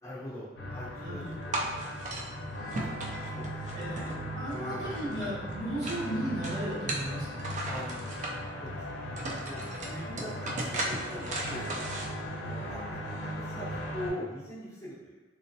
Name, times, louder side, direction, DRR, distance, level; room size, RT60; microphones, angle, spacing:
voice 1, 0.0-1.8 2.6-3.8 4.5-5.2 7.6-8.2 8.6-11.8 12.2-13.6 13.9-15.2, left 1 dB, 15° left, -11 dB, 0.8 m, -43 dB
sound 1, 0.6-14.1, equal, 65° left, 0.6 m, -38 dB
voice 2, 1.0-1.3 3.7-7.4 8.9-9.1 9.8-10.0, equal, 75° right, -8 dB, 1.1 m, -36 dB
sound 2, 1.5-2.3 2.7-4.5 4.8-6.1 6.4-8.3 8.8-8.9 9.2-12.1, right 2 dB, 40° right, 0.3 m, -36 dB
3.1 x 2.0 x 2.7 m, 1.2 s
head